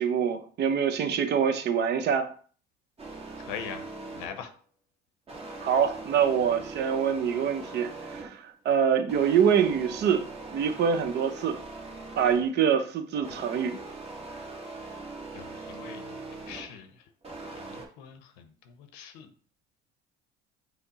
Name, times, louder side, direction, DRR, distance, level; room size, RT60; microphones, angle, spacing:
voice 1, 0.0-2.3 5.6-10.2 10.5-11.6 12.2-13.8, right 7 dB, 55° right, 0.7 m, -25 dB
sound 1, 3.0-4.5 5.3-8.5 9.1-12.6 13.1-16.8 17.2-17.8, right 3 dB, 30° right, 1.2 m, -41 dB
voice 2, 3.5-3.8 4.1-4.5 15.3-16.2 16.5-16.9 17.6-19.3, left 8 dB, 85° left, 0.7 m, -42 dB
5.7 x 2.0 x 4.0 m
supercardioid pair, 85°, 21 cm